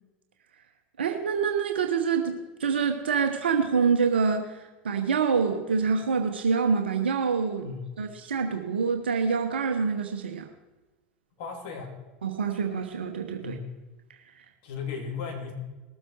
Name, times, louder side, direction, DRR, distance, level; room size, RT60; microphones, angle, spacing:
voice 1, 1.0-4.6 4.8-7.7 8.0-10.5 12.2-13.6, right 5 dB, 85° right, 5 dB, 1.0 m, -26 dB
voice 2, 7.6-7.9 11.4-12.0 13.4-13.8 14.6-15.5, left 5 dB, 60° left, 0 dB, 3.3 m, -36 dB
19.5 x 7.8 x 4.6 m, 1.2 s
hypercardioid pair, 85°, 6 cm